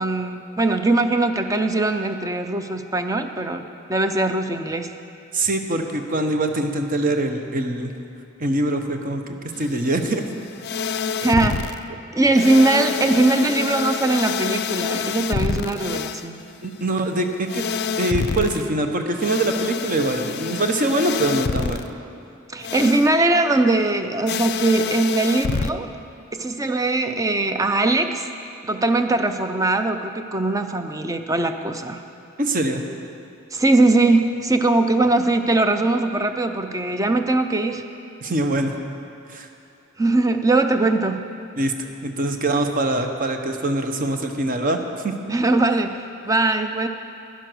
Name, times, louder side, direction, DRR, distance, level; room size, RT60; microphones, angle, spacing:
voice 1, 0.0-4.9 11.2-11.7 12.1-16.4 22.5-25.9 26.3-28.3 28.6-32.0 33.5-37.8 40.0-41.3 45.3-46.9, right 2 dB, 15° right, 7 dB, 0.5 m, -21 dB
voice 2, 5.3-7.9 8.4-10.2 16.6-17.6 18.0-21.9 32.4-32.8 38.2-38.8 39.3-39.5 41.6-41.7 42.0-45.1, right 2 dB, 40° right, 5 dB, 0.9 m, -23 dB
sound 1, 9.5-11.8 12.3-18.6 19.2-21.8 22.6-23.1 24.3-25.7, left 5 dB, 50° left, 0.4 m, -27 dB
11.5 x 10.5 x 6.2 m, 2.6 s
head